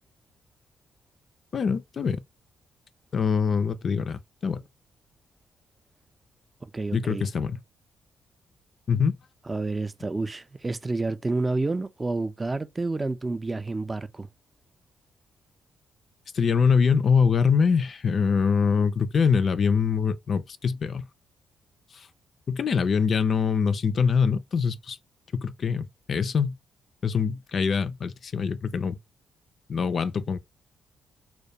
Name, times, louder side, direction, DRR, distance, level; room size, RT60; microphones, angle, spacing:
voice 1, 1.5-2.2 3.1-4.6 6.9-7.6 8.9-9.1 16.3-21.0 21.9-22.1 22.5-25.0 25.3-26.5 27.0-29.0 29.7-30.4, left 6 dB, 55° left, 0.3 m, -24 dB
voice 2, 6.7-7.3 9.5-14.3, right 3 dB, 25° right, 0.4 m, -29 dB
2.2 x 2.2 x 2.6 m
hypercardioid pair, 50°, 0 cm